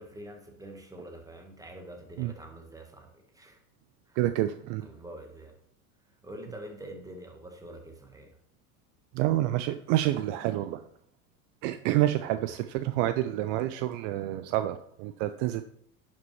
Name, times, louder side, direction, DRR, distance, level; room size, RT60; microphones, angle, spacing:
voice 1, 0.0-3.6 4.1-4.2 4.8-5.5 6.2-8.3 12.2-12.4, right 1 dB, 10° right, 4 dB, 1.4 m, -45 dB
voice 2, 4.2-4.9 9.1-10.8 11.6-15.6, right 14 dB, 55° right, 11 dB, 0.5 m, -28 dB
10.5 x 5.2 x 3.2 m, 0.67 s
hypercardioid pair, 90°, 45 cm